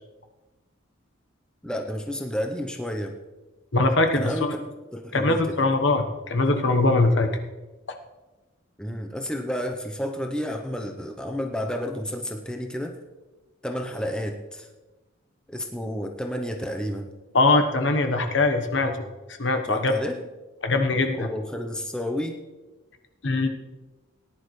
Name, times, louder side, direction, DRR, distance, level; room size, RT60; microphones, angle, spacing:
voice 1, 1.6-3.2 4.1-5.6 8.8-12.9 13.6-14.7 15.5-17.1 19.7-20.2 21.2-22.3, equal, 5° left, 3 dB, 0.7 m, -31 dB
voice 2, 3.7-4.5 5.1-7.3 17.3-19.0 19.4-19.9 20.6-21.3 23.2-23.5, left 2 dB, 60° left, 6 dB, 1.1 m, -22 dB
18.5 x 10.5 x 3.2 m, 1.1 s
head